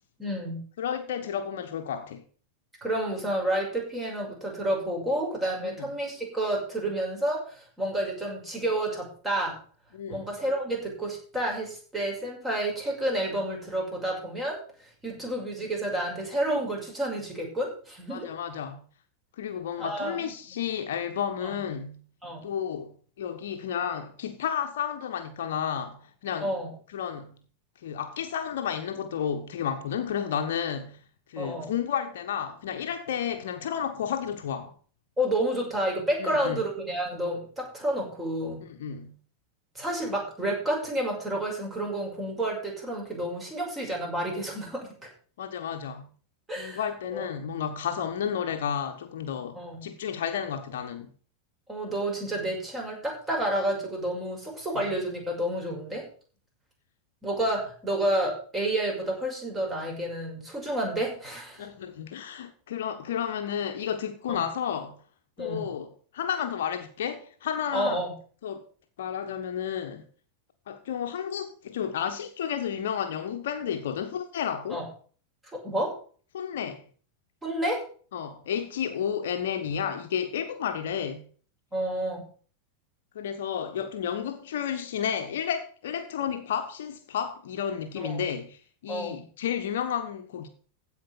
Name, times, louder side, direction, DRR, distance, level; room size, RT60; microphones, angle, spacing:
voice 1, 0.2-0.6 2.8-9.6 10.1-14.6 15.0-18.3 19.8-20.6 21.4-21.6 22.2-22.4 26.4-26.7 31.4-31.7 35.2-38.6 39.7-44.9 46.5-46.8 47.1-47.3 49.5-49.9 51.7-56.1 57.2-61.7 64.3-64.5 65.4-65.7 67.7-68.1 74.7-74.9 75.5-76.0 77.4-77.8 81.7-82.3 88.0-88.2 88.9-89.2, right 1 dB, 15° right, 5.9 m, -30 dB
voice 2, 0.8-2.2 5.6-5.9 9.9-10.2 18.1-18.8 19.4-22.0 22.4-26.6 26.9-27.3 27.8-31.0 31.3-34.7 36.2-36.6 38.7-39.2 45.4-46.1 46.6-51.1 54.7-54.9 61.6-65.0 65.4-65.9 66.1-68.0 68.4-68.6 69.0-70.0 70.7-74.8 76.3-76.8 78.1-81.3 83.1-90.5, left 8 dB, 60° left, 1.2 m, -32 dB
15.5 x 5.2 x 6.8 m
figure-of-eight pair, 90°, 0 cm